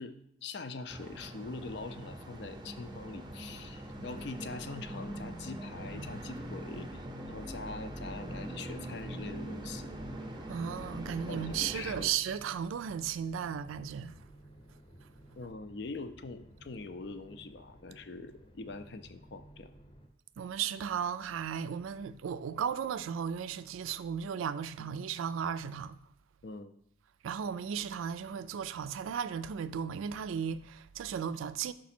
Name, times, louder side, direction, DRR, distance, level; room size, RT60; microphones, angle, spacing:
voice 1, 0.0-9.8 11.3-12.1 15.4-19.7 26.4-26.7, left 3 dB, 60° left, 0.4 m, -43 dB
sound 1, 0.9-12.0, right 1 dB, 20° right, 0.5 m, -42 dB
sound 2, 1.2-20.1, equal, 25° left, 0.7 m, -56 dB
voice 2, 10.5-14.2 20.4-26.0 27.2-31.7, right 8 dB, 90° right, 0.3 m, -35 dB
6.0 x 4.9 x 4.3 m
head